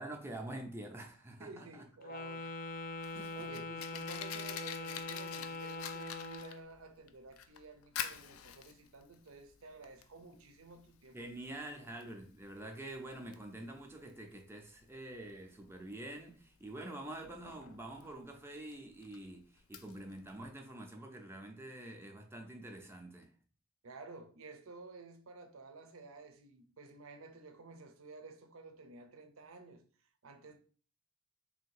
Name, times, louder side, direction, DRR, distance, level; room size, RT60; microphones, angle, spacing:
voice 1, 0.0-1.8 3.1-3.6 11.1-23.3, right 1 dB, 10° right, 0.5 m, -46 dB
voice 2, 1.4-2.6 3.0-11.3 11.8-11.9 23.8-29.8 30.2-30.6, right 3 dB, 80° right, 0.7 m, -52 dB
Wind instrument woodwind instrument, 2.0-6.6, left 2 dB, 40° left, 0.6 m, -42 dB
Fire, 2.7-20.4, left 9 dB, 90° left, 0.4 m, -48 dB
3.5 x 2.7 x 4.6 m
head